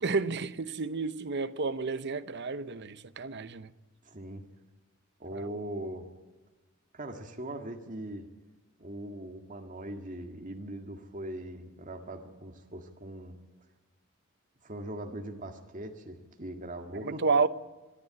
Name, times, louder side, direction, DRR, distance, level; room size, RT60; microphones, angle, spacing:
voice 1, 0.0-3.7 5.3-5.5 17.0-17.5, right 4 dB, 55° right, 0.8 m, -30 dB
voice 2, 4.0-4.4 5.2-6.1 6.9-8.3 8.8-13.4 14.6-17.3, right 1 dB, 40° right, 1.9 m, -40 dB
25.0 x 11.0 x 9.8 m
head